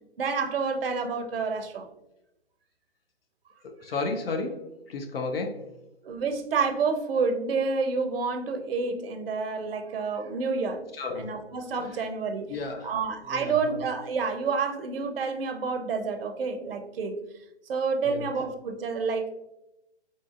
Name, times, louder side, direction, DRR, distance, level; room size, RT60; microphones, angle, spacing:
voice 1, 0.2-1.9 6.0-10.8 11.1-12.5 12.8-17.2 17.7-19.3, right 4 dB, 55° right, 6 dB, 0.6 m, -29 dB
voice 2, 3.6-4.6 4.9-5.6 10.9-11.4 12.5-12.9 13.3-13.8 18.0-18.3, left 3 dB, 55° left, 4 dB, 0.5 m, -33 dB
3.8 x 2.4 x 2.4 m, 0.89 s
figure-of-eight pair, 130°, 34 cm